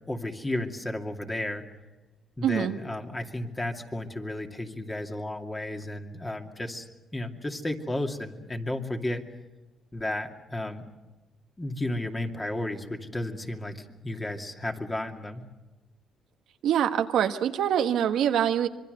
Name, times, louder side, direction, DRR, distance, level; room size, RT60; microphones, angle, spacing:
voice 1, 0.1-1.7 2.4-9.2 9.9-10.9 11.6-15.5, left 1 dB, 20° left, 2.5 m, -33 dB
voice 2, 2.4-2.8 16.6-18.7, right 9 dB, 75° right, 1.3 m, -24 dB
25.5 x 23.0 x 6.7 m
cardioid pair, 90°, 0 cm